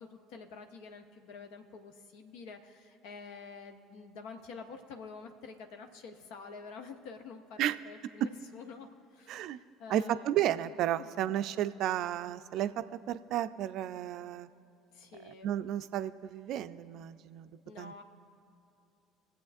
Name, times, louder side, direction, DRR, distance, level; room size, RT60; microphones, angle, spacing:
voice 1, 0.0-10.3 11.0-11.1 14.9-15.5 17.6-18.0, left 5 dB, 65° left, 6 dB, 0.8 m, -48 dB
voice 2, 9.3-9.6 9.9-14.5 15.2-17.5 17.8-17.9, right 11 dB, 55° right, 12 dB, 0.4 m, -33 dB
21.5 x 7.8 x 2.6 m, 2.8 s
figure-of-eight pair, 60°, 0 cm